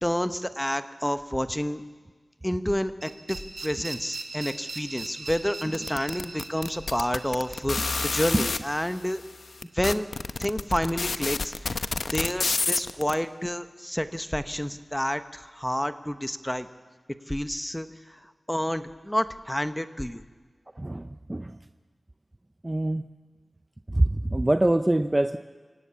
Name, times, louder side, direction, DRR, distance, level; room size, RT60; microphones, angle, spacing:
voice 1, 0.0-1.8 2.4-9.2 9.7-10.1 10.4-16.7 17.3-20.2, equal, 10° left, 10 dB, 1.0 m, -29 dB
sound 1, 3.0-9.8, right 3 dB, 70° right, 2.9 m, -41 dB
sound 2, 5.7-8.6 9.3-9.4 9.6-13.1, left 3 dB, 75° left, 0.8 m, -28 dB
voice 2, 20.8-21.6 22.6-23.0 23.9-25.4, right 1 dB, 25° right, 9 dB, 0.6 m, -24 dB
25.5 x 17.0 x 8.5 m, 1.5 s
wide cardioid pair, 65°, 0 cm